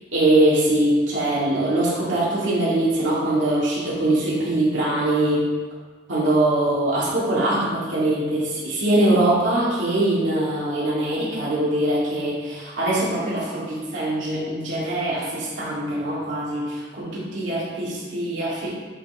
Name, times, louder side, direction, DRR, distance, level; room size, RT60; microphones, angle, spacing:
voice 1, 0.1-5.5 6.1-18.7, right 1 dB, 85° right, -8 dB, 2.2 m, -22 dB
8.9 x 4.5 x 3.5 m, 1.4 s
head